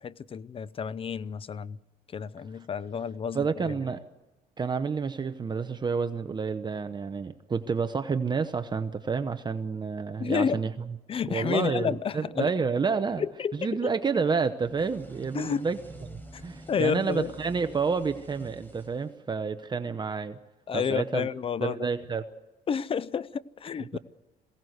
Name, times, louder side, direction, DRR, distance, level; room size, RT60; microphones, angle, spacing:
voice 1, 0.0-1.8 2.1-3.7 10.2-10.6 11.1-12.5 13.2-13.9 15.3-15.6 16.3-16.4 16.7-17.3 20.7-21.9 22.7-24.0, left 7 dB, 35° left, 0.6 m, -30 dB
voice 2, 3.3-4.0 4.6-10.7 11.3-13.2 13.5-15.8 16.1-20.4 20.7-21.3 21.6-22.2 23.9-24.0, right 5 dB, 25° right, 0.9 m, -29 dB
sound 1, 14.6-19.5, right 1 dB, 10° left, 4.6 m, -48 dB
22.0 x 17.0 x 8.0 m
cardioid pair, 110°, 17 cm